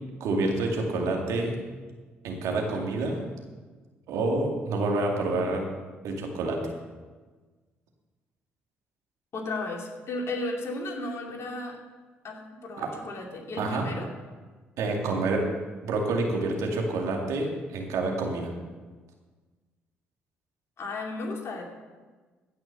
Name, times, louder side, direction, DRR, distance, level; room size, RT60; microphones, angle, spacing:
voice 1, 0.2-1.6 2.2-3.2 4.1-5.6 6.0-6.6 12.8-12.9 13.6-13.9 14.8-15.5 15.8-18.5, right 2 dB, 70° right, 1 dB, 2.3 m, -28 dB
voice 2, 9.3-11.8 12.2-14.1 20.8-21.6, left 2 dB, 55° left, 1 dB, 2.6 m, -34 dB
15.5 x 6.1 x 6.7 m, 1.3 s
hypercardioid pair, 50°, 6 cm